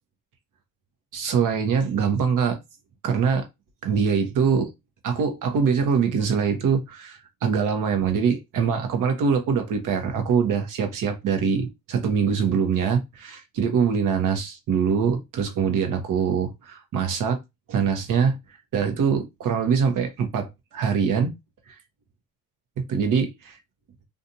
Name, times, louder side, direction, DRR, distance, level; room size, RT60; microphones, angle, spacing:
voice 1, 1.1-2.6 3.0-3.5 3.8-4.7 5.0-17.4 17.7-18.4 18.7-21.3 21.7-21.8 22.9-23.6, right 6 dB, 60° right, 0.9 m, -23 dB
2.5 x 2.4 x 2.7 m
cardioid pair, 90°, 36 cm